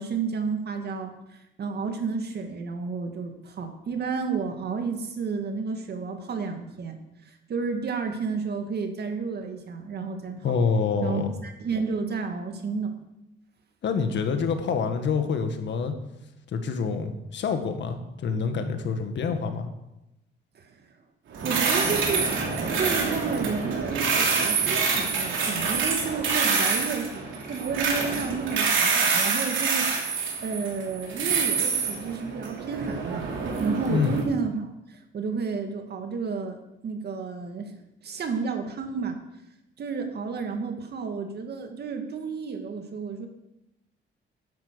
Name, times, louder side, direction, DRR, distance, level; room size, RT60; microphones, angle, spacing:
voice 1, 0.0-7.0 7.3-10.6 11.0-13.0 20.6-20.7 21.4-22.3 22.7-29.9 30.4-33.3 33.6-36.6 36.8-37.7 38.0-39.2 39.8-43.3, right 5 dB, 55° right, 5 dB, 2.1 m, -31 dB
voice 2, 10.4-11.3 13.8-15.9 16.5-19.7 33.9-34.2, left 5 dB, 65° left, 7 dB, 1.7 m, -26 dB
sound 1, 21.3-34.2, right 5 dB, 75° right, 3.1 m, -26 dB
10.5 x 8.6 x 6.9 m, 0.90 s
cardioid pair, 90°, 20 cm